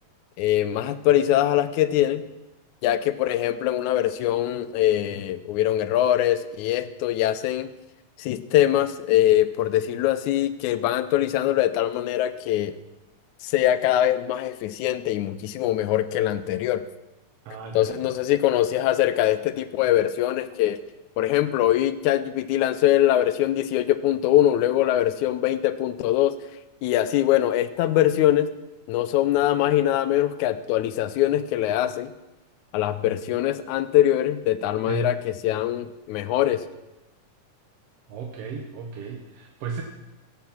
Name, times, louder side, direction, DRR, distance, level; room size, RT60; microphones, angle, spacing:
voice 1, 0.4-2.2 2.8-7.7 8.2-12.7 13.4-16.8 17.7-20.8 21.2-26.3 26.8-28.5 28.9-32.1 32.7-36.6, left 12 dB, 80° left, 12 dB, 1.9 m, -22 dB
voice 2, 17.5-18.2 34.9-35.1 38.1-39.8, right 4 dB, 65° right, 2 dB, 1.7 m, -34 dB
16.5 x 8.3 x 6.0 m, 1.0 s
omnidirectional pair, 3.6 m